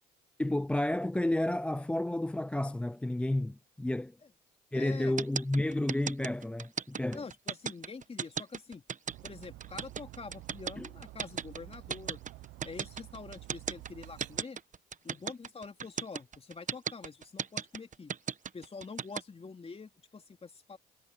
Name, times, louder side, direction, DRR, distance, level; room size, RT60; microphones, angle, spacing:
voice 1, 0.4-4.2 4.7-7.2 10.8-10.9, left 1 dB, 5° left, 0.4 m, -31 dB
voice 2, 4.7-5.2 7.1-8.8 9.2-12.2 12.6-14.6 15.0-18.2 18.5-20.8, left 4 dB, 30° left, 3.1 m, -46 dB
sound 1, 5.2-19.2, right 7 dB, 40° right, 1.2 m, -35 dB
Dog, 9.1-14.4, right 18 dB, 70° right, 0.8 m, -50 dB
supercardioid pair, 65°, 20 cm